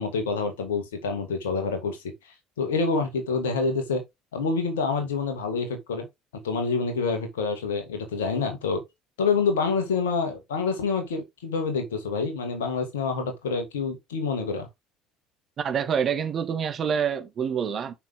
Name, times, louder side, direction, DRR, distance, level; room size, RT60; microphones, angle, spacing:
voice 1, 0.0-2.0 2.6-4.0 4.3-6.1 6.4-8.8 9.2-14.7, left 4 dB, 75° left, 2.3 m, -27 dB
voice 2, 15.6-17.9, right 7 dB, 45° right, 2.0 m, -26 dB
6.8 x 5.9 x 3.7 m
figure-of-eight pair, 60°, 0 cm